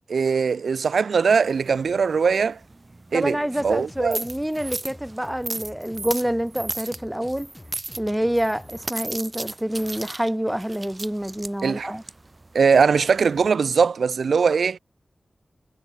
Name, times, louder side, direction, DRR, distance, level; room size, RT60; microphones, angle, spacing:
voice 1, 0.1-2.6 3.1-4.2 11.6-11.9 12.5-14.8, right 5 dB, 85° right, 0.4 m, -21 dB
sound 1, 1.4-13.5, right 2 dB, 30° right, 2.0 m, -37 dB
voice 2, 3.1-7.5 8.0-12.0, right 1 dB, 5° right, 0.4 m, -27 dB
sound 2, 3.5-8.8, left 1 dB, 15° left, 4.7 m, -46 dB
wide cardioid pair, 85°, 0 cm